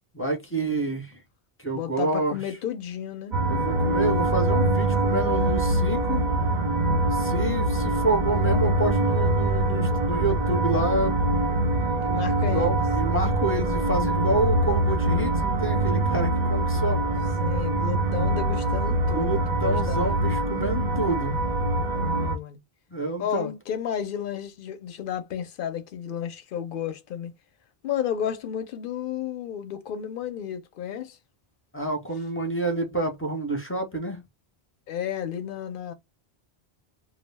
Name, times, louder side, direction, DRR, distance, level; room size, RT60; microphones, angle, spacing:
voice 1, 0.1-1.2 1.6-2.4 3.5-6.2 7.1-11.2 12.5-17.0 19.1-21.4 22.9-23.6 31.7-34.2, right 2 dB, 15° left, 0.5 m, -28 dB
voice 2, 1.7-3.4 11.5-11.6 12.0-12.8 17.4-20.1 21.9-22.6 23.2-27.3 27.8-31.2 34.9-35.9, left 9 dB, 65° left, 0.7 m, -32 dB
sound 1, 3.3-22.4, right 2 dB, 50° right, 0.5 m, -24 dB
2.3 x 2.0 x 3.3 m
omnidirectional pair, 1.0 m